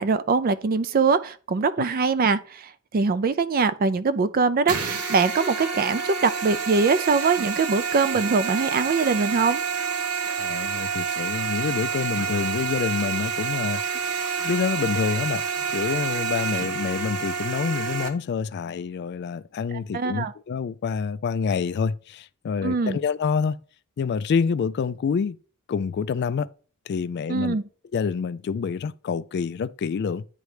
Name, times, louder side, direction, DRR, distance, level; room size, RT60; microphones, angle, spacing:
voice 1, 0.0-9.6 19.9-20.3 22.6-23.0 27.3-27.6, right 4 dB, 40° right, 0.4 m, -23 dB
sound 1, 4.7-18.1, right 6 dB, 85° right, 1.0 m, -28 dB
voice 2, 10.3-14.1 14.4-23.6 24.0-25.4 25.7-26.5 26.9-27.6 27.9-30.3, left 6 dB, 50° left, 0.3 m, -27 dB
9.1 x 3.2 x 4.9 m
head